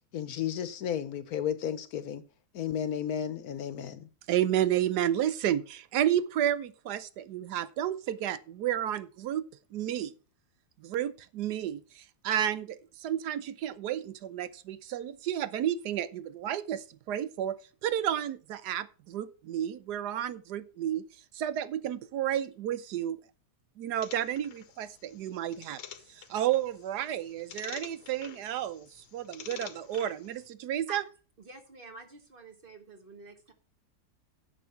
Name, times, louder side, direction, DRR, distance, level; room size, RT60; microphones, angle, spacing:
voice 1, 0.1-2.2 2.5-4.1, left 9 dB, 65° left, 1.3 m, -33 dB
voice 2, 4.3-10.1 10.8-17.6 17.8-21.1 21.3-23.2 23.8-25.8 26.1-31.0, right 11 dB, 80° right, 1.3 m, -31 dB
sound 1, 24.0-30.5, left 8 dB, 85° left, 1.6 m, -48 dB
voice 3, 31.4-33.5, right 3 dB, 35° right, 1.6 m, -48 dB
10.0 x 6.3 x 5.6 m
omnidirectional pair, 1.7 m